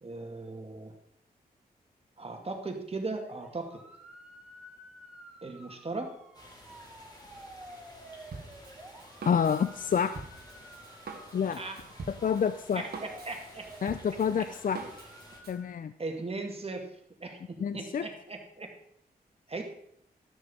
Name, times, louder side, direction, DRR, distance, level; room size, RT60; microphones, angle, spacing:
voice 1, 0.0-0.9 2.2-3.8 5.4-6.1 11.6-11.8 12.7-13.9 14.4-14.5 16.0-16.9 17.2-18.7 19.5-19.6, right 3 dB, 40° right, 3 dB, 2.2 m, -38 dB
sound 1, 3.2-15.7, right 1 dB, 5° right, 3.8 m, -52 dB
sound 2, 6.3-15.4, left 1 dB, 25° left, 3.3 m, -53 dB
Drum kit, 8.3-15.6, right 4 dB, 80° right, 1.7 m, -45 dB
voice 2, 9.3-10.2 11.3-11.6 12.1-12.9 13.8-14.8 15.5-15.9 17.6-18.1, left 7 dB, 60° left, 12 dB, 0.5 m, -28 dB
12.5 x 6.4 x 5.6 m, 0.71 s
cardioid pair, 70°, 16 cm